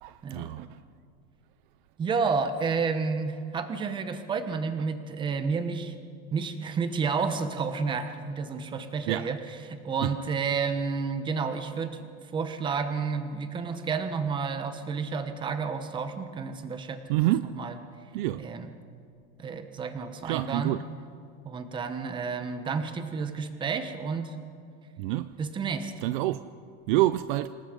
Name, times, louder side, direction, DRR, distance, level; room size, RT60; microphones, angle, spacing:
voice 1, 0.0-0.8 9.1-9.3 10.0-10.1 17.1-17.6 18.1-18.5 20.2-20.9 25.0-25.3 26.0-26.5 26.9-27.5, right 16 dB, 50° right, 0.5 m, -27 dB
voice 2, 2.0-5.9 6.3-9.4 9.7-12.0 12.3-17.7 18.4-18.7 19.4-20.7 21.4-24.4 25.4-25.9, right 5 dB, 15° right, 1.0 m, -30 dB
27.0 x 19.5 x 5.2 m
supercardioid pair, 170°, 33 cm